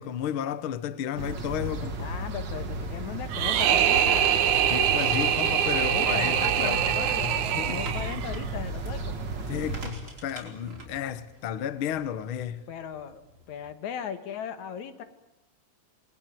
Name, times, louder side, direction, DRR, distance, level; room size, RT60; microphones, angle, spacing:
voice 1, 0.0-2.1 4.7-7.9 9.5-12.6, left 10 dB, 55° left, 1.7 m, -33 dB
sound 1, 1.2-9.9, right 2 dB, 40° right, 2.4 m, -34 dB
voice 2, 2.0-4.5 5.7-9.4 12.7-13.2 13.5-15.0, left 8 dB, 75° left, 2.9 m, -37 dB
sound 2, 3.3-8.4, right 10 dB, 80° right, 2.6 m, -24 dB
sound 3, 7.8-13.7, right 1 dB, 25° right, 4.7 m, -47 dB
28.0 x 21.0 x 9.3 m
omnidirectional pair, 3.4 m